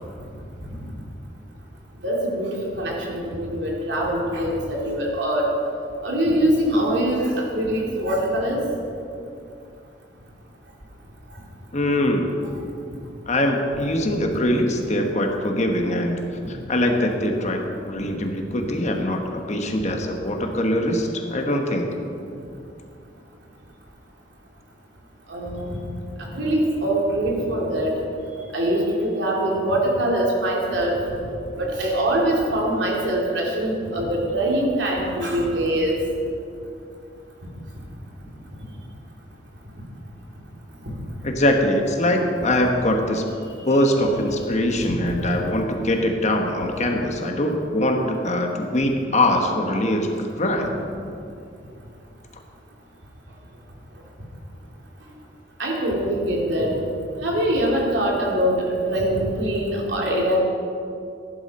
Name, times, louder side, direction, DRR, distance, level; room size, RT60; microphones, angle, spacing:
voice 1, 2.0-5.5 6.0-8.6 25.3-25.8 26.2-27.9 28.5-31.0 31.6-36.0 40.9-41.0 44.8-45.0 55.6-56.8 57.2-60.4, right 1 dB, 75° right, -2 dB, 2.8 m, -23 dB
voice 2, 11.7-12.4 13.3-16.2 16.5-21.9 41.2-43.2 43.6-50.7, left 1 dB, 40° left, 3 dB, 1.2 m, -22 dB
15.5 x 11.0 x 4.3 m, 2.6 s
head